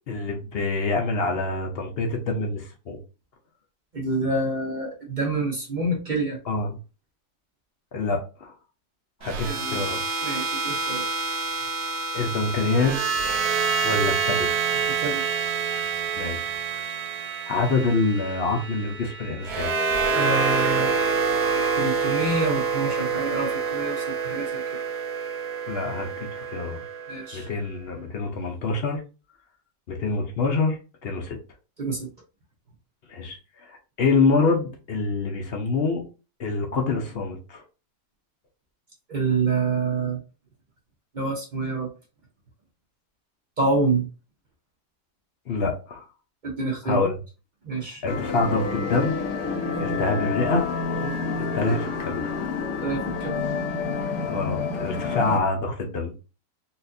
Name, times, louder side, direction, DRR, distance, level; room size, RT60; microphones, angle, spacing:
voice 1, 0.1-3.0 6.5-6.8 7.9-8.5 9.2-10.0 12.1-13.1 13.8-14.8 16.2-16.5 17.5-19.7 25.7-26.8 27.3-29.0 29.9-31.4 33.1-33.4 33.6-36.0 36.4-37.6 45.5-46.0 46.8-47.1 48.0-49.2 49.8-50.7 51.5-52.2 54.3-56.1, left 3 dB, 55° left, 0.7 m, -26 dB
voice 2, 3.9-6.4 9.4-9.8 10.2-11.1 15.0-15.2 20.1-20.9 21.7-24.8 27.1-27.5 31.8-32.1 39.1-40.2 41.1-41.9 43.6-44.1 46.4-47.1 47.6-48.0 51.0-51.1 52.8-53.3, right 3 dB, 50° right, 0.6 m, -27 dB
sound 1, 9.2-27.4, right 5 dB, 75° right, 1.2 m, -27 dB
sound 2, 48.1-55.4, left 4 dB, 80° left, 1.4 m, -28 dB
4.1 x 2.5 x 2.6 m
omnidirectional pair, 1.8 m